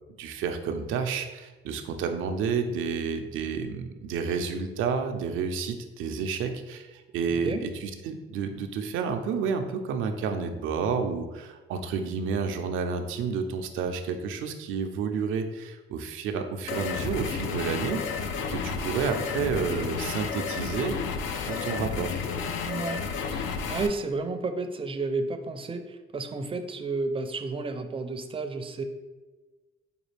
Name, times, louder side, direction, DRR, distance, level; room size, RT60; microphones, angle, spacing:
voice 1, 0.2-21.0 21.4-22.1, right 5 dB, 85° right, 6 dB, 0.5 m, -30 dB
sound 1, 16.7-23.9, left 6 dB, 80° left, 0.4 m, -31 dB
voice 2, 22.7-23.0 23.3-28.8, right 3 dB, 25° right, 7 dB, 0.4 m, -32 dB
5.1 x 2.3 x 3.2 m, 1.2 s
cardioid pair, 90°, 20 cm